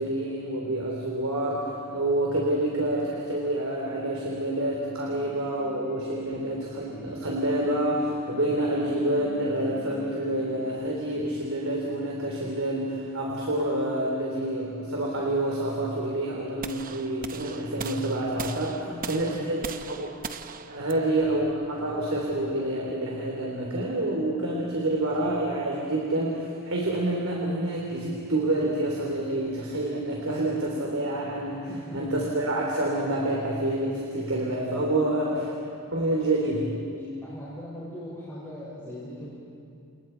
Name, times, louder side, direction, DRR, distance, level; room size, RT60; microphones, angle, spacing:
voice 1, 0.0-19.6 19.9-20.1 20.7-35.3 35.9-36.7, right 1 dB, 70° right, -2 dB, 3.4 m, -28 dB
sound 1, 5.1-10.8, left 2 dB, 40° left, 4.9 m, -49 dB
sound 2, 16.6-22.7, right 5 dB, 40° right, 0.8 m, -40 dB
voice 2, 18.8-19.6 20.9-21.0 31.7-32.2 35.0-35.7 36.2-36.3 37.2-39.3, left 1 dB, 10° left, -9 dB, 5.9 m, -40 dB
29.0 x 29.0 x 4.6 m, 2.5 s
head